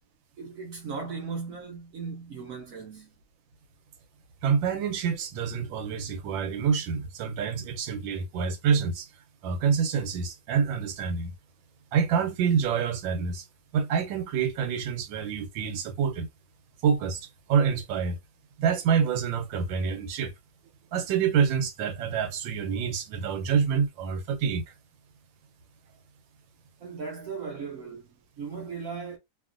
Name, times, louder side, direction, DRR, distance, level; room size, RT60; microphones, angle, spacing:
voice 1, 0.4-3.1 26.8-29.2, right 5 dB, 65° right, 0.9 m, -37 dB
voice 2, 4.4-9.1 9.4-11.3 11.9-13.4 13.7-16.3 16.8-18.2 18.6-20.3 20.9-24.6, right 6 dB, 85° right, 1.3 m, -27 dB
2.8 x 2.4 x 2.4 m
omnidirectional pair, 2.0 m